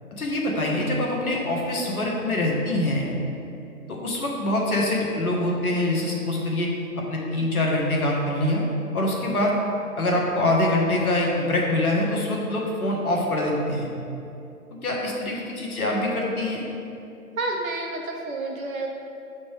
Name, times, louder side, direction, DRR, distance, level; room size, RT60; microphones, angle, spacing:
voice 1, 0.2-3.2 3.9-6.7 7.1-8.6 8.9-9.6 10.0-13.9 14.8-16.6, left 1 dB, 75° left, -2 dB, 1.5 m, -24 dB
voice 2, 17.4-18.9, right 2 dB, 65° right, 1 dB, 1.1 m, -29 dB
7.3 x 4.2 x 3.4 m, 2.7 s
hypercardioid pair, 145°, 44 cm